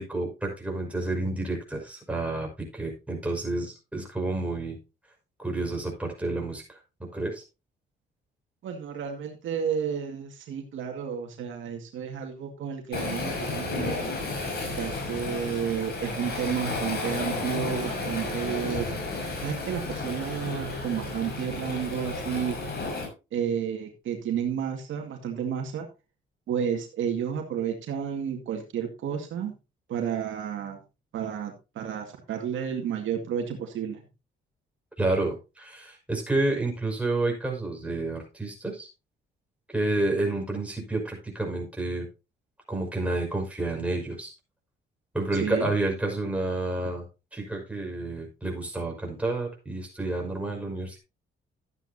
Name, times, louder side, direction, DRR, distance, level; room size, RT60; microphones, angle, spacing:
voice 1, 0.0-4.8 5.4-6.8 7.1-7.4 35.0-38.9 39.7-42.1 42.7-44.3 45.1-47.1 47.3-51.0, right 2 dB, 5° right, 0 dB, 5.6 m, -30 dB
voice 2, 8.6-14.1 14.8-18.9 19.4-22.6 23.3-25.9 26.5-29.5 29.9-30.8 31.1-34.0 45.4-45.7, right 8 dB, 75° right, 3 dB, 2.1 m, -31 dB
Waves surf, 12.9-23.1, left 3 dB, 55° left, 5.9 m, -32 dB
13.0 x 9.3 x 2.8 m, 0.29 s
cardioid pair, 90°, 20 cm